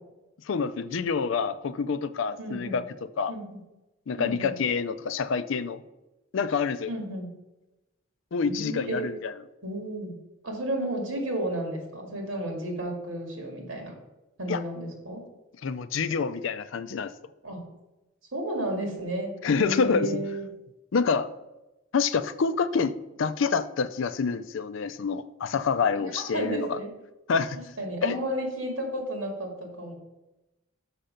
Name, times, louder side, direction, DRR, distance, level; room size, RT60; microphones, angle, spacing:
voice 1, 0.5-2.8 3.2-3.3 4.1-5.8 6.3-6.9 8.3-9.3 14.5-14.6 15.6-17.1 19.4-20.2 20.9-21.3 21.9-22.9 23.2-26.8 27.3-27.6 28.0-28.2, left 5 dB, 70° left, 14 dB, 0.4 m, -27 dB
voice 2, 2.4-2.8 3.3-3.6 4.2-4.6 6.9-7.3 8.4-9.1 9.6-10.2 10.4-13.9 14.4-15.2 17.4-17.6 18.3-20.5 26.0-26.9 27.8-29.9, right 1 dB, 70° right, 2 dB, 2.0 m, -32 dB
6.6 x 5.7 x 5.1 m, 0.99 s
head